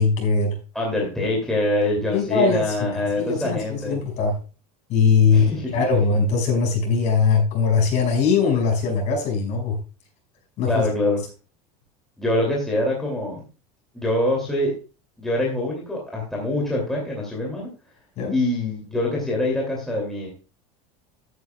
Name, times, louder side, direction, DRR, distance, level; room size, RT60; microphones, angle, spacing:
voice 1, 0.0-0.6 2.1-4.4 4.9-9.8 10.6-10.9 18.2-18.3, left 5 dB, 40° left, 1 dB, 5.6 m, -21 dB
voice 2, 0.7-3.9 5.3-5.7 10.7-11.2 12.2-13.4 13.9-14.7 15.2-17.7 18.3-20.3, left 1 dB, ahead, -3 dB, 2.6 m, -24 dB
14.0 x 9.7 x 2.3 m, 0.33 s
cardioid pair, 170°, 18 cm